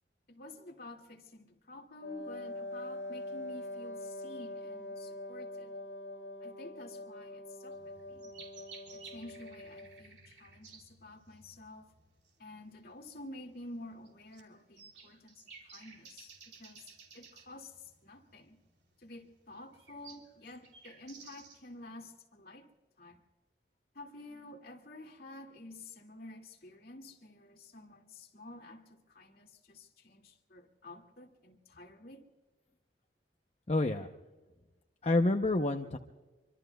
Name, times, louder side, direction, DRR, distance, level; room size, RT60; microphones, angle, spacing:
voice 1, 0.3-5.7 6.4-8.3 8.9-11.9 12.4-18.6 19.0-22.7 23.0-23.2 23.9-32.2, left 2 dB, 55° left, 2 dB, 2.2 m, -50 dB
Wind instrument woodwind instrument, 2.0-10.1, left 1 dB, 90° left, 2.4 m, -44 dB
sound 1, 7.7-21.8, right 5 dB, 70° right, 3.1 m, -56 dB
voice 2, 33.7-34.1 35.0-36.0, left 2 dB, 35° left, 4 dB, 0.7 m, -28 dB
25.0 x 25.0 x 2.3 m, 1.2 s
head